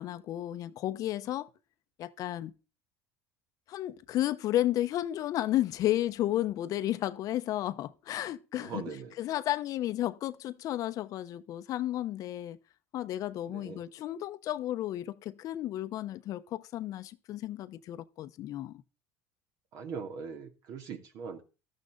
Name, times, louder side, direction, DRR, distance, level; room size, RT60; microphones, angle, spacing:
voice 1, 0.0-1.5 2.0-2.5 3.7-8.8 9.2-12.6 12.9-18.8, left 13 dB, 55° left, 0.9 m, -33 dB
voice 2, 8.6-9.1 13.5-13.8 19.7-21.4, right 5 dB, 60° right, 2.8 m, -41 dB
13.5 x 12.0 x 3.9 m
supercardioid pair, 110°, 7 cm